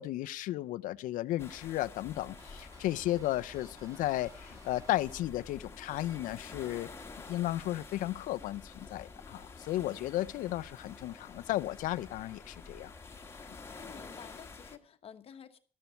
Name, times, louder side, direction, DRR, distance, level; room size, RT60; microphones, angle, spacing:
voice 1, 0.0-6.9 7.3-12.9, left 15 dB, 80° left, 0.6 m, -34 dB
sound 1, 1.4-14.8, left 4 dB, 20° left, 1.5 m, -49 dB
sound 2, 2.4-5.2, right 2 dB, 25° right, 2.2 m, -58 dB
voice 2, 13.8-15.6, left 8 dB, 45° left, 1.1 m, -51 dB
13.0 x 12.5 x 4.4 m
cardioid pair, 130°, 13 cm